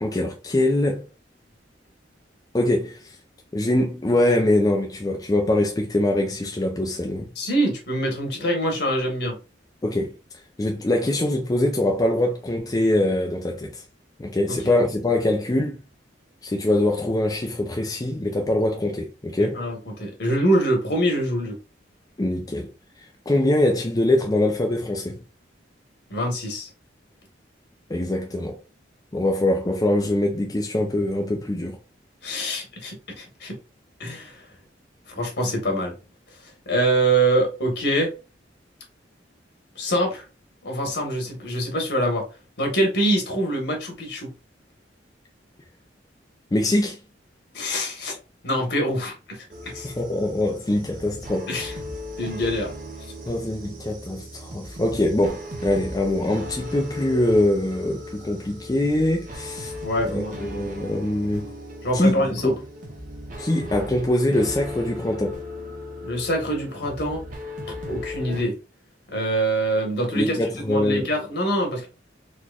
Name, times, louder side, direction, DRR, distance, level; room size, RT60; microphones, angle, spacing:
voice 1, 0.0-1.0 2.5-3.1 3.5-7.3 9.8-10.1 10.6-13.8 14.2-15.8 16.4-19.6 22.2-22.7 23.3-25.2 27.9-28.6 29.1-31.8 46.5-47.0 49.8-51.5 53.3-59.7 60.1-61.5 61.9-62.6 63.4-65.4 70.1-71.1, left 1 dB, 20° left, 0.5 m, -23 dB
voice 2, 7.3-9.4 14.5-14.7 19.4-21.6 26.1-26.7 32.2-33.6 34.0-34.5 35.1-35.9 36.6-38.1 39.7-40.2 40.6-42.3 42.6-44.3 47.5-48.2 48.4-49.9 51.5-51.7 52.2-52.7 59.8-60.4 61.8-62.5 66.0-67.2 67.8-68.5 69.1-70.4 70.7-71.9, right 1 dB, 65° left, 1.5 m, -24 dB
sound 1, 49.5-68.4, left 1 dB, 50° right, 0.9 m, -37 dB
4.0 x 3.0 x 2.4 m
head